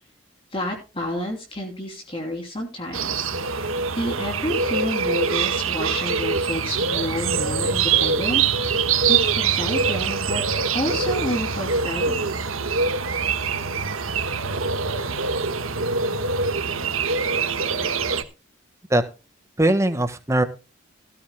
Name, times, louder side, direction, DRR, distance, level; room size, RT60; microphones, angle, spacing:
voice 1, 0.5-10.4 10.7-12.3, left 1 dB, 25° left, 1 dB, 3.1 m, -30 dB
sound 1, 2.9-18.2, right 5 dB, 90° right, 1.5 m, -24 dB
voice 2, 19.6-20.4, right 1 dB, 15° right, 10 dB, 1.4 m, -20 dB
18.0 x 13.5 x 2.2 m, 0.32 s
head